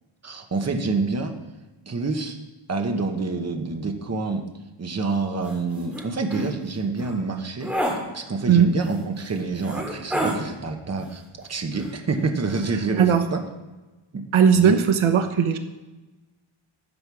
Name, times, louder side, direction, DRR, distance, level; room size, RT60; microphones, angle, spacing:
voice 1, 0.2-1.3 1.9-2.4 2.7-4.4 4.8-7.7 8.1-13.4 14.1-14.2 14.5-14.8, right 3 dB, 30° right, 4 dB, 1.0 m, -27 dB
sound 1, 5.4-5.6 5.9-6.0 6.3-6.5 6.9-7.1 7.6-8.0 8.9-9.0 9.6-10.4 11.7-12.2 12.5-12.7, right 1 dB, 5° right, 2.3 m, -28 dB
voice 2, 14.3-15.6, right 7 dB, 75° right, 8 dB, 0.9 m, -17 dB
12.5 x 7.7 x 4.8 m, 1.1 s
wide cardioid pair, 160°, 49 cm